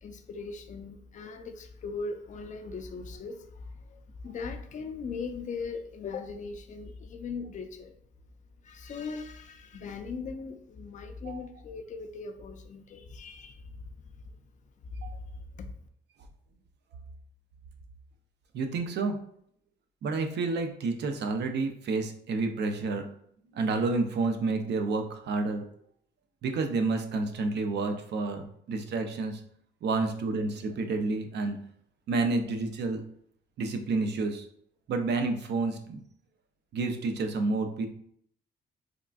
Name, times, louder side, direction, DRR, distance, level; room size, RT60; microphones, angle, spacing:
voice 1, 0.0-7.9 8.6-13.7 14.9-15.0 15.5-15.7, left 4 dB, 40° left, 6 dB, 0.4 m, -39 dB
voice 2, 18.5-19.2 20.0-23.0 23.5-25.6 26.4-29.4 29.8-31.6 32.1-33.0 33.6-34.5 34.9-36.0 36.7-37.9, right 3 dB, 60° right, 6 dB, 0.5 m, -29 dB
3.6 x 2.4 x 2.3 m, 0.66 s
cardioid pair, 90°, 20 cm